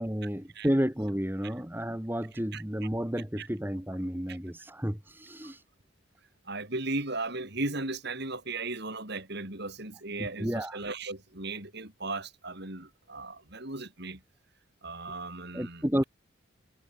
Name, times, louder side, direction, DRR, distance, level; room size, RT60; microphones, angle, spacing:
voice 1, 0.0-5.6 10.2-10.8 15.5-16.0, equal, 10° right, 1.7 m, -31 dB
voice 2, 6.4-14.2 14.8-15.8, right 2 dB, 50° right, 4.4 m, -36 dB
head